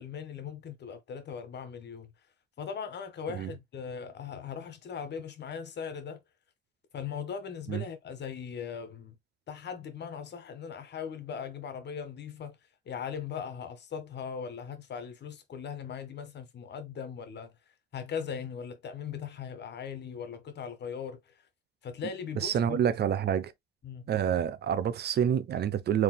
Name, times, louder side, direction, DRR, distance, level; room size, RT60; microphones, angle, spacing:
voice 1, 0.0-2.1 2.6-6.2 6.9-9.2 9.5-12.6 12.8-17.5 17.9-21.3 21.8-22.8 23.8-24.1, left 7 dB, 60° left, 1.6 m, -39 dB
voice 2, 22.4-23.5 24.1-26.0, right 9 dB, 55° right, 0.7 m, -27 dB
4.8 x 3.5 x 2.2 m
cardioid pair, 90°, 20 cm